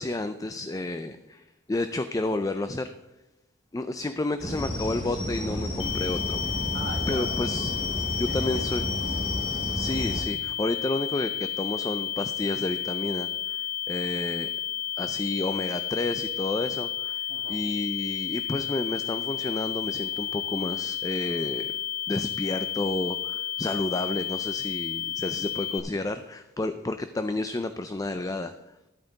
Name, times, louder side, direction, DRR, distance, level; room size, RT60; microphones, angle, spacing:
voice 1, 0.0-2.9 3.7-6.4 7.1-7.7 8.2-8.9 9.7-13.6 13.9-14.5 15.0-21.7 22.1-28.5, left 2 dB, 20° left, 10 dB, 0.4 m, -31 dB
sound 1, 4.4-10.2, equal, 45° left, 2.8 m, -31 dB
sound 2, 5.8-25.8, left 11 dB, 90° left, 1.1 m, -32 dB
voice 2, 6.7-9.4 17.3-17.6 26.6-26.8, right 2 dB, 45° right, 0 dB, 1.6 m, -43 dB
13.0 x 8.8 x 3.9 m, 0.95 s
head